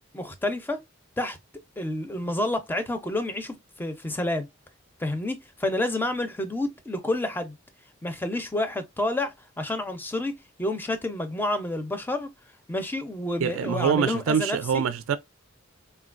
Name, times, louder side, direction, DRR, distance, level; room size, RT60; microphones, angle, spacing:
voice 1, 0.1-0.8 1.2-1.4 1.8-4.5 5.0-7.6 8.0-12.3 12.7-14.8, left 1 dB, 10° left, 0.4 m, -29 dB
voice 2, 13.4-15.2, right 7 dB, 80° right, 0.3 m, -25 dB
3.8 x 2.2 x 2.4 m
head